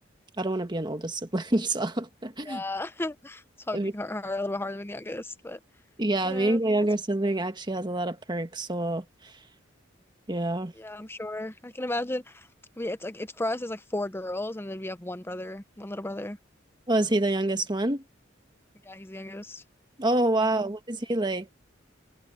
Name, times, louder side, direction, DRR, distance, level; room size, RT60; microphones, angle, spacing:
voice 1, 0.4-2.6 3.7-3.9 6.0-9.3 10.3-10.7 16.9-18.0 20.0-21.5, right 2 dB, 25° right, 1.5 m, -27 dB
voice 2, 2.5-5.6 6.2-6.6 10.8-12.5 12.8-16.4 18.8-19.6 20.3-20.7, left 1 dB, 15° left, 0.8 m, -34 dB
head